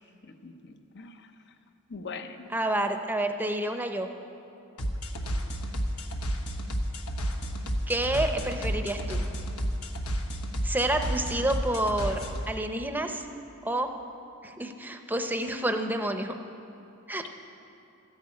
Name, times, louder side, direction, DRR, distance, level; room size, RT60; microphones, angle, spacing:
voice 1, 0.4-1.3 1.9-2.5, left 4 dB, 55° left, 8 dB, 0.8 m, -41 dB
voice 2, 2.5-4.1 7.9-9.3 10.6-13.3 13.6-13.9 14.4-16.3 17.1-17.2, right 1 dB, 10° right, 6 dB, 0.7 m, -29 dB
sound 1, 4.8-12.5, equal, 75° left, 1.2 m, -31 dB
13.5 x 10.5 x 8.6 m, 2.8 s
head